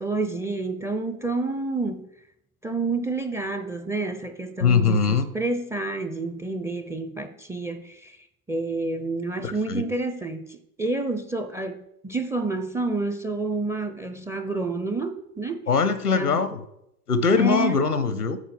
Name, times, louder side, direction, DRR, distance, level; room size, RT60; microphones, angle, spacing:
voice 1, 0.0-2.1 2.6-8.2 8.5-15.6 16.1-16.4 17.4-17.8, right 3 dB, 5° right, 0.5 m, -29 dB
voice 2, 4.6-5.3 9.4-9.8 15.7-16.6 17.1-18.4, left 5 dB, 90° left, 0.8 m, -22 dB
8.9 x 3.7 x 7.0 m
figure-of-eight pair, 75°, 44 cm